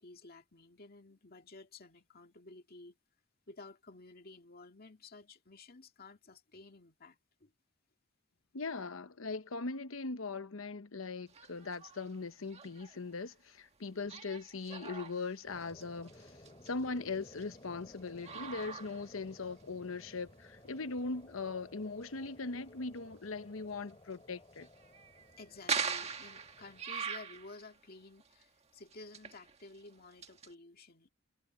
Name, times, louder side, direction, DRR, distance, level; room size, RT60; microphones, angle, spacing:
voice 1, 0.0-3.0 3.5-7.5 13.8-14.1 25.4-31.1, left 3 dB, 45° left, 2.2 m, -53 dB
voice 2, 8.5-16.3 16.6-24.7, left 3 dB, 80° left, 1.0 m, -40 dB
sound 1, 11.3-12.2 12.4-13.0 14.1-17.5 18.0-19.6 20.2-20.3 20.9-21.0 23.9-24.1 24.6-27.8 28.2-28.4 28.9-30.5, right 6 dB, 30° right, 1.7 m, -42 dB
sound 2, 15.4-26.8, left 1 dB, 25° left, 7.1 m, -57 dB
head